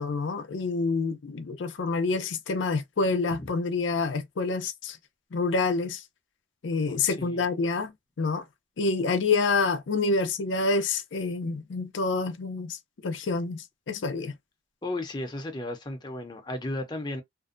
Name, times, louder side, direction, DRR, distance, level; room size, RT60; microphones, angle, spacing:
voice 1, 0.0-5.0 5.3-6.0 6.6-7.9 8.2-8.4 8.8-12.8 13.0-14.3, left 3 dB, 80° left, 0.5 m, -27 dB
voice 2, 6.9-7.4 14.8-17.2, left 1 dB, 25° left, 0.6 m, -34 dB
2.5 x 2.1 x 2.4 m
head